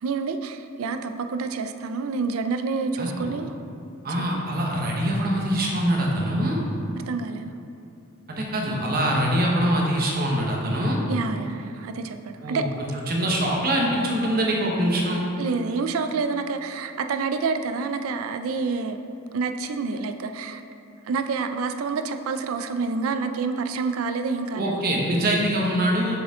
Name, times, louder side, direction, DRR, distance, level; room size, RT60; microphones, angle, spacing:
voice 1, 0.0-3.5 4.3-4.4 7.1-7.5 11.1-12.7 15.4-19.0 19.3-20.6 21.1-24.8, right 4 dB, 70° right, 8 dB, 0.4 m, -28 dB
voice 2, 3.0-3.3 4.0-6.6 8.3-11.0 12.4-12.7 13.1-15.2 24.6-26.2, right 1 dB, 45° right, -2 dB, 1.0 m, -24 dB
7.1 x 4.8 x 3.6 m, 2.8 s
head